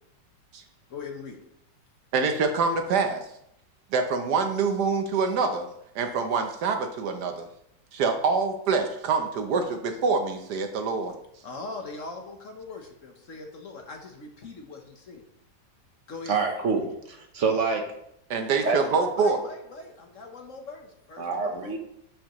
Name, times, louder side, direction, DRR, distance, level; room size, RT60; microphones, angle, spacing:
voice 1, 0.9-1.4 11.4-15.2 16.1-16.4 18.6-21.8, left 3 dB, 50° left, 3 dB, 1.2 m, -41 dB
voice 2, 2.1-3.2 3.9-5.7 5.9-7.5 7.9-11.1 18.3-19.4, right 4 dB, 70° right, 6 dB, 1.3 m, -25 dB
voice 3, 16.3-17.8 18.6-18.8 21.2-21.8, right 4 dB, 50° right, 4 dB, 1.2 m, -26 dB
11.5 x 5.4 x 3.0 m, 0.75 s
omnidirectional pair, 2.0 m